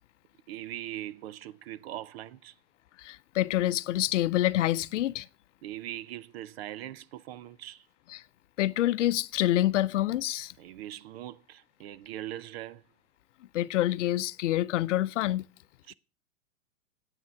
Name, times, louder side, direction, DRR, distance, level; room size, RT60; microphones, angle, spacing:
voice 1, 0.5-2.5 5.6-7.9 10.6-12.8 15.9-16.0, right 13 dB, 45° right, 0.6 m, -41 dB
voice 2, 3.0-5.3 8.1-8.2 8.6-10.5 13.5-15.5, left 14 dB, 60° left, 0.6 m, -27 dB
9.5 x 8.9 x 5.7 m
hypercardioid pair, 115°, 41 cm